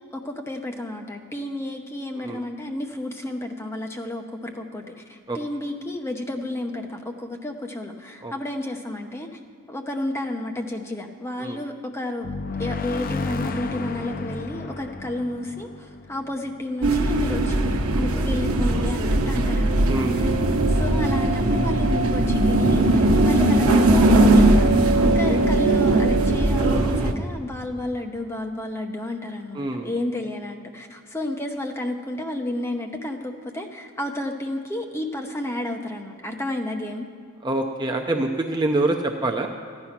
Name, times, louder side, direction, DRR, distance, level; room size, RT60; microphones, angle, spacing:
voice 1, 0.1-9.3 9.7-12.3 12.6-20.1 20.7-37.1, left 1 dB, 10° left, 3 dB, 0.8 m, -31 dB
sound 1, 12.2-16.8, left 3 dB, 40° left, 0.5 m, -32 dB
sound 2, 16.8-27.1, right 2 dB, 80° right, 0.9 m, -19 dB
voice 2, 19.9-20.2 25.0-25.4 29.5-29.9 37.4-39.5, right 2 dB, 20° right, 2 dB, 0.6 m, -26 dB
14.0 x 9.7 x 5.9 m, 2.1 s
head